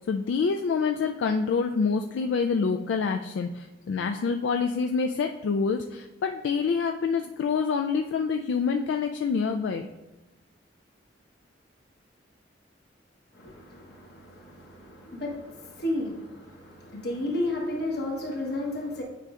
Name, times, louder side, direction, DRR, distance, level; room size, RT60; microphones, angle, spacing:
voice 1, 0.0-9.9, left 5 dB, 80° left, 4 dB, 0.3 m, -27 dB
voice 2, 13.3-19.0, left 1 dB, 60° left, 0 dB, 1.2 m, -33 dB
9.0 x 5.2 x 2.4 m, 1.0 s
head